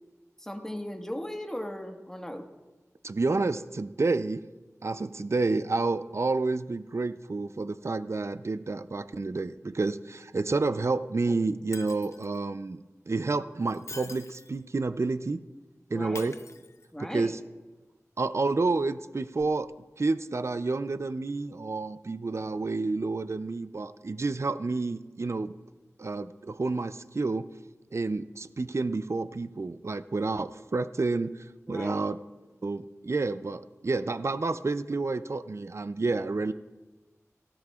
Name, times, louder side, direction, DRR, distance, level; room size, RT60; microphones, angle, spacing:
voice 1, 0.4-2.5 11.3-11.4 15.9-16.3 16.9-17.4 31.7-32.0, equal, 10° left, 3 dB, 1.5 m, -37 dB
voice 2, 3.0-4.4 4.8-15.4 15.9-16.4 17.0-17.4 18.2-19.7 20.0-25.5 26.0-27.5 27.9-32.2 32.6-36.5, right 3 dB, 55° right, 13 dB, 0.4 m, -29 dB
Shatter, 11.7-12.4 13.6-14.6 16.1-17.1 19.4-19.5, left 2 dB, 55° left, 0.7 m, -45 dB
17.0 x 14.0 x 2.4 m, 1.2 s
wide cardioid pair, 40°, 6 cm